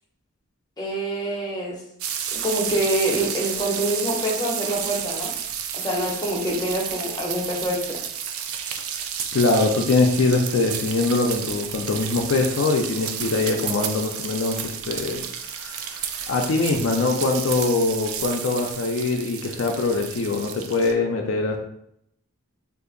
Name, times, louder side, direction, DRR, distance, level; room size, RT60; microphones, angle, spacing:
voice 1, 0.8-1.8 2.3-5.3 5.7-8.0, right 1 dB, 20° left, -3 dB, 0.6 m, -26 dB
sound 1, 2.0-20.9, right 8 dB, 75° right, 0.3 m, -31 dB
voice 2, 9.3-15.2 15.5-21.6, left 3 dB, 60° left, 1 dB, 0.4 m, -23 dB
2.7 x 2.4 x 3.8 m, 0.73 s
head